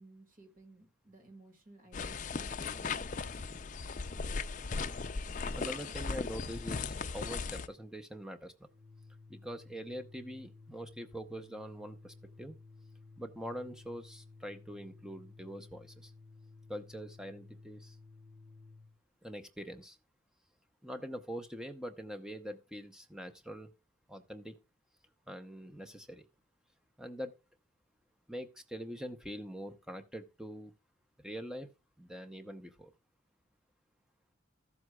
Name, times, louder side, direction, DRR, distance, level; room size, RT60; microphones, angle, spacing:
voice 1, 0.0-3.1, right 2 dB, 45° right, 2.2 m, -57 dB
sound 1, 1.9-7.7, left 4 dB, 40° left, 0.5 m, -37 dB
voice 2, 5.6-8.5 9.3-12.6 13.2-16.1 16.7-18.0 19.2-20.0 20.8-23.7 24.1-24.6 25.3-26.2 27.0-27.4 28.3-30.7 31.2-31.7 32.0-32.9, equal, 5° right, 0.7 m, -44 dB
Organ, 8.6-19.0, left 3 dB, 75° right, 1.4 m, -55 dB
14.0 x 7.8 x 2.3 m
head